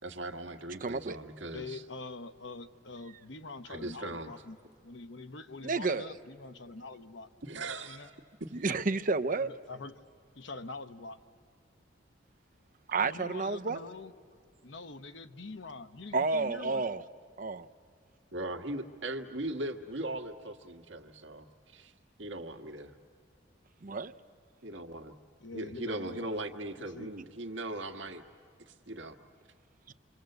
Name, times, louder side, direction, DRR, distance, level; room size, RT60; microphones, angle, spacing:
voice 1, 0.0-1.8 3.6-4.4 7.4-8.1 18.3-21.9 22.2-22.9 24.6-25.1 25.5-28.2 28.7-29.2, right 1 dB, 80° right, 6 dB, 1.7 m, -39 dB
voice 2, 0.8-1.2 5.6-6.1 8.5-9.5 12.9-13.8 16.1-17.0 17.4-17.7 23.8-24.1, right 3 dB, 45° right, 11 dB, 0.7 m, -30 dB
voice 3, 1.5-4.6 4.8-8.1 9.4-10.0 10.4-11.2 13.0-14.1 14.6-16.8 25.4-26.4 26.8-27.1, left 3 dB, 75° left, 8 dB, 1.1 m, -45 dB
27.0 x 25.5 x 7.9 m, 2.3 s
head